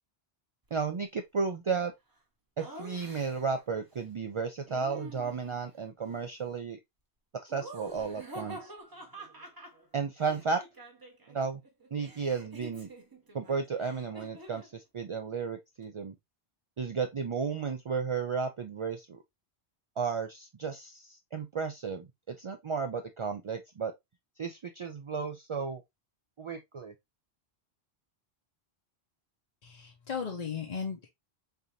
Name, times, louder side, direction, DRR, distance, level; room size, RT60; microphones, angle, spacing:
voice 1, 0.7-1.9 2.6-6.8 7.4-8.7 9.9-10.6 11.3-11.6 11.9-12.9 13.3-16.2 16.8-19.2 20.0-23.9 24.4-25.8 26.4-26.9, right 5 dB, 55° right, 0.3 m, -33 dB
Laughter, 2.6-3.6 4.7-5.7 7.5-11.4 11.6-14.7, right 1 dB, 20° right, 0.8 m, -47 dB
voice 2, 29.6-31.1, left 6 dB, 45° left, 0.7 m, -36 dB
3.8 x 3.4 x 2.7 m
omnidirectional pair, 1.1 m